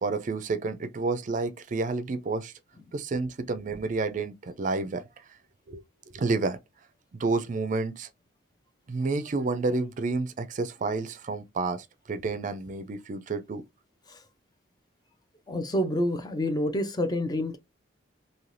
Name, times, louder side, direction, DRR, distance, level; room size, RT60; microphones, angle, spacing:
voice 1, 0.0-2.5 2.9-5.0 5.7-5.8 6.1-6.6 7.1-8.1 8.9-13.6, right 3 dB, 45° right, 0.4 m, -30 dB
voice 2, 15.5-17.6, left 1 dB, 20° left, 0.5 m, -28 dB
3.2 x 2.7 x 2.6 m
head